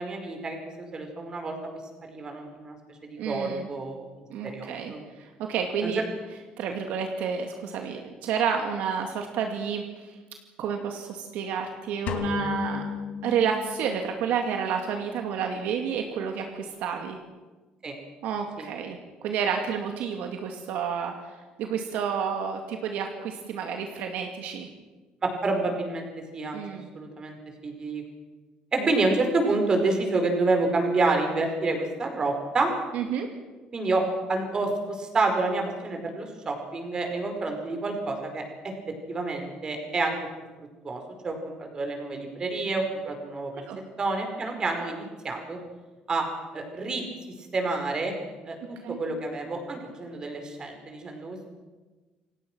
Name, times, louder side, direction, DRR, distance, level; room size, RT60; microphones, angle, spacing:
voice 1, 0.0-1.5 2.0-2.8 3.0-4.1 4.4-5.0 5.8-6.0 17.8-18.0 18.6-18.7 25.2-26.6 26.9-27.4 27.6-28.0 28.7-32.7 33.7-34.0 34.3-38.4 39.1-40.2 40.8-43.5 44.0-45.6 46.1-46.2 46.5-47.0 47.5-48.1 48.4-51.4, right 3 dB, 30° right, 3 dB, 5.1 m, -28 dB
voice 2, 3.2-3.7 4.3-6.0 6.6-10.1 10.6-12.9 13.2-17.2 18.2-21.3 21.6-24.7 26.5-26.9 28.8-28.9 32.9-33.3 43.7-43.8 48.8-49.0, right 7 dB, 75° right, 4 dB, 2.3 m, -30 dB
sound 1, 12.1-14.1, left 7 dB, 65° left, 2.4 m, -33 dB
28.5 x 17.5 x 6.3 m, 1.2 s
cardioid pair, 125°, 3 cm